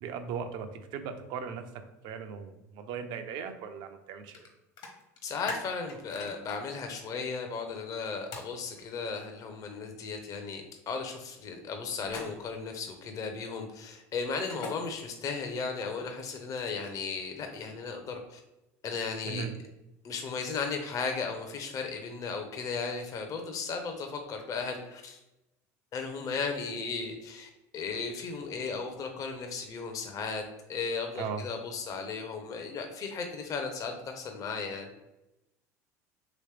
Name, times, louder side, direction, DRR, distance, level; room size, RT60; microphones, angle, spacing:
voice 1, 0.0-1.6 2.0-4.4 19.2-19.5 31.2-31.4, right 6 dB, 60° right, 8 dB, 0.5 m, -38 dB
sound 1, 4.3-4.5 4.8-6.6 8.3-8.5 12.0-12.6 14.3-14.7 16.1-17.0, left 4 dB, 65° left, 1.0 m, -41 dB
voice 2, 5.2-18.4 18.8-19.4 20.0-25.2 25.9-30.4 30.7-34.9, left 5 dB, 40° left, 4 dB, 0.6 m, -35 dB
3.0 x 3.0 x 3.3 m, 0.94 s
hypercardioid pair, 80°, 8 cm